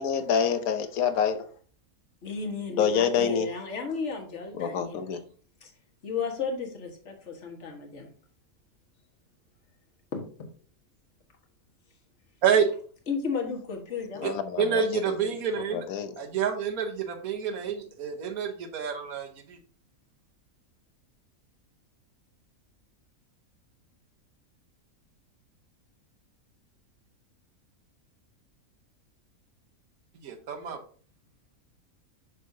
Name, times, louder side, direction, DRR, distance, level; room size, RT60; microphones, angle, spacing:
voice 1, 0.0-1.4 2.7-3.5 4.6-5.2 14.1-15.1 15.7-16.1, left 7 dB, 80° left, 9 dB, 1.2 m, -27 dB
voice 2, 2.2-5.0 5.6-5.7 6.0-8.1 10.1-10.5 13.1-14.3, left 5 dB, 55° left, 1 dB, 1.7 m, -34 dB
voice 3, 14.6-15.9 16.2-19.6 30.2-30.8, right 7 dB, 85° right, 5 dB, 1.5 m, -28 dB
6.4 x 6.2 x 2.7 m, 0.43 s
omnidirectional pair, 1.5 m